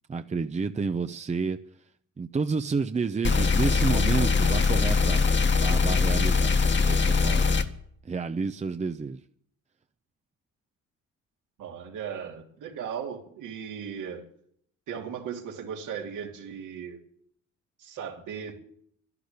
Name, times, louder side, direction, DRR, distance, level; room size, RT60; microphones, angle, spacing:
voice 1, 0.1-1.6 2.2-7.6 8.0-9.2, right 4 dB, 25° right, 9 dB, 0.7 m, -30 dB
sound 1, 3.2-7.6, left 4 dB, 40° left, 1.6 m, -22 dB
voice 2, 11.6-14.2 14.9-17.0 17.8-18.6, right 7 dB, 85° right, 1 dB, 3.3 m, -37 dB
12.0 x 12.0 x 8.3 m, 0.64 s
cardioid pair, 90°, 30 cm